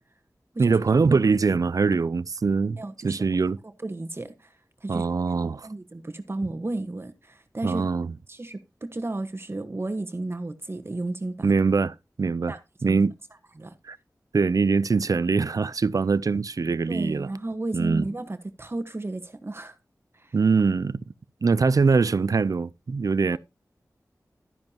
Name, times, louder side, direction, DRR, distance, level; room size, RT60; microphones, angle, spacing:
voice 1, 0.6-3.6 4.9-5.7 7.6-8.1 11.4-12.6 12.8-13.1 13.8-14.0 14.3-17.3 17.7-18.1 20.3-21.0 21.4-23.4, right 4 dB, 65° right, 0.5 m, -23 dB
voice 2, 2.8-3.2 3.8-4.6 4.8-5.0 5.6-7.8 8.3-11.5 12.5-13.0 13.6-13.7 16.9-19.8 20.1-20.3 23.3-23.4, right 2 dB, 40° right, 1.3 m, -33 dB
12.5 x 10.5 x 2.9 m
wide cardioid pair, 80°, 6 cm